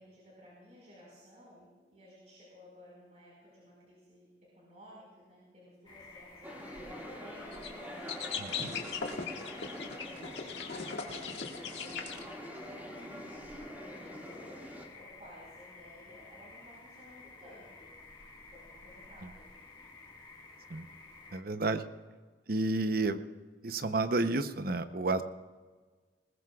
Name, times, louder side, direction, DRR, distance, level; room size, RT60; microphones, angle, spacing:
voice 1, 0.0-4.3 4.5-9.4 9.9-13.4 13.8-14.6 14.9-17.9 18.5-19.5, equal, 40° right, -5 dB, 5.1 m, -56 dB
sound 1, 5.8-21.4, left 3 dB, 25° left, 1.8 m, -53 dB
sound 2, 6.4-14.9, equal, 10° right, 2.0 m, -45 dB
sound 3, 7.5-7.7 8.1-12.2, left 5 dB, 85° left, 1.8 m, -39 dB
voice 2, 8.4-8.7 20.7-20.9 21.3-21.8 22.5-23.2 23.6-25.2, right 2 dB, 55° right, 10 dB, 0.8 m, -31 dB
20.5 x 20.0 x 2.4 m, 1.4 s
head